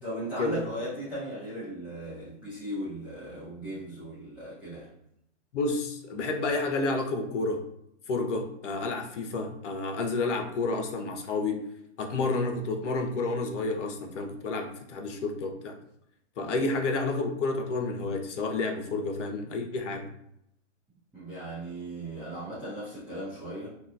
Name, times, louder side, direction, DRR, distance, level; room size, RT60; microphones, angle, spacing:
voice 1, 0.0-4.9 16.4-16.7 21.1-23.7, right 1 dB, 5° right, -14 dB, 0.8 m, -37 dB
voice 2, 5.5-7.6 8.1-11.6 12.0-15.8 16.4-20.1, left 3 dB, 75° left, 3 dB, 0.8 m, -30 dB
3.0 x 2.2 x 2.5 m, 0.76 s
hypercardioid pair, 140°, 36 cm